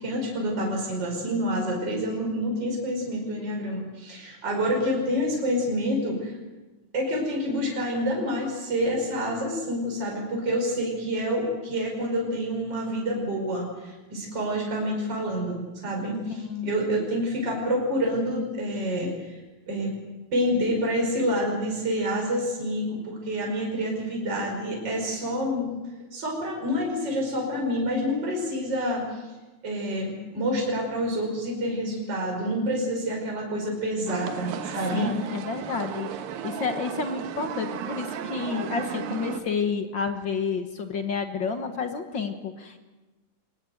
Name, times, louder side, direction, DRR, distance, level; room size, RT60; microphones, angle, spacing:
voice 1, 0.0-6.4 6.9-19.1 19.7-19.9 20.3-25.7 26.1-29.0 29.6-35.1, equal, 30° right, 0 dB, 5.9 m, -28 dB
sound 1, 34.1-39.4, right 8 dB, 85° right, 3.0 m, -34 dB
voice 2, 34.9-36.1 36.4-42.8, left 5 dB, 50° left, 6 dB, 1.4 m, -30 dB
24.5 x 19.5 x 7.9 m, 1.2 s
omnidirectional pair, 3.9 m